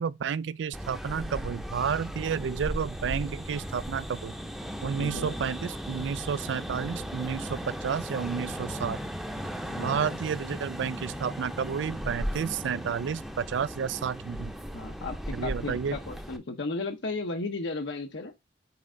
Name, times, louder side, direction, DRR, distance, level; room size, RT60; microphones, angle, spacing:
voice 1, 0.0-4.3 4.8-9.0 9.8-14.5 15.3-16.0, right 7 dB, 85° right, 0.4 m, -31 dB
sound 1, 0.7-16.4, equal, ahead, 0.6 m, -37 dB
voice 2, 5.0-5.4 9.7-10.2 14.7-18.4, left 3 dB, 80° left, 0.8 m, -35 dB
5.8 x 4.3 x 3.8 m
head